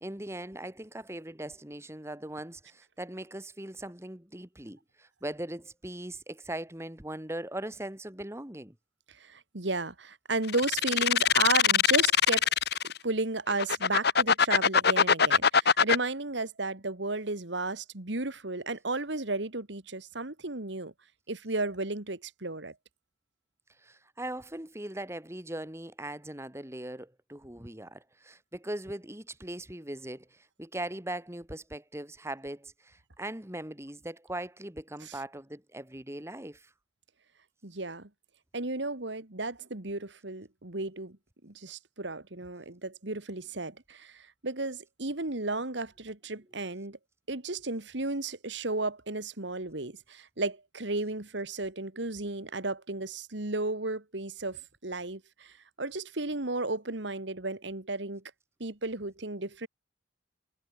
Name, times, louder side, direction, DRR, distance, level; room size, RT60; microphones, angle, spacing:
voice 1, 0.0-8.8 23.8-36.7, right 1 dB, 15° right, 1.9 m, -40 dB
voice 2, 9.2-12.5 13.0-20.9 21.3-22.7 35.1-35.2 37.6-38.1 38.5-41.2 41.4-47.0 47.3-58.2 58.6-59.7, right 2 dB, 65° right, 2.0 m, -33 dB
sound 1, 10.5-13.0 13.5-16.0, left 7 dB, 55° left, 1.4 m, -22 dB
head